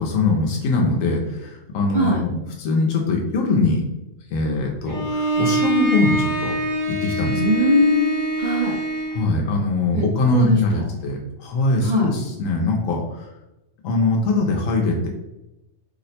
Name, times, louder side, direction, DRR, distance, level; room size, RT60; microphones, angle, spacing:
voice 1, 0.0-3.8 4.3-6.5 6.9-7.4 9.1-13.3 13.8-15.1, left 2 dB, 90° left, 0 dB, 1.0 m, -22 dB
Bowed string instrument, 4.9-9.3, right 1 dB, 40° right, 1.1 m, -24 dB
voice 2, 7.3-8.8 9.9-11.0 11.8-12.1, left 1 dB, 60° right, -1 dB, 0.5 m, -21 dB
2.8 x 2.1 x 4.0 m, 0.93 s
omnidirectional pair, 1.3 m